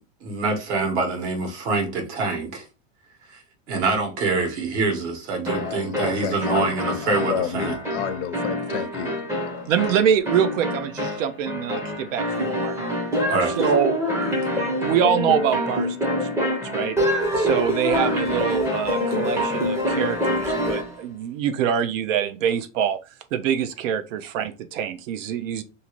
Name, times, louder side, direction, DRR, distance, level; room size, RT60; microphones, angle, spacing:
voice 1, 0.2-2.6 3.3-3.4 3.7-7.7 13.3-13.6, right 3 dB, 60° right, 1.2 m, -25 dB
sound 1, 5.5-20.9, equal, 5° right, 0.5 m, -26 dB
voice 2, 5.6-9.7, left 8 dB, 60° left, 0.5 m, -31 dB
voice 3, 9.7-12.8 13.6-13.9 14.8-17.0 17.3-23.0 23.3-25.6, right 8 dB, 75° right, 0.6 m, -25 dB
2.7 x 2.5 x 2.9 m
supercardioid pair, 150°, 39 cm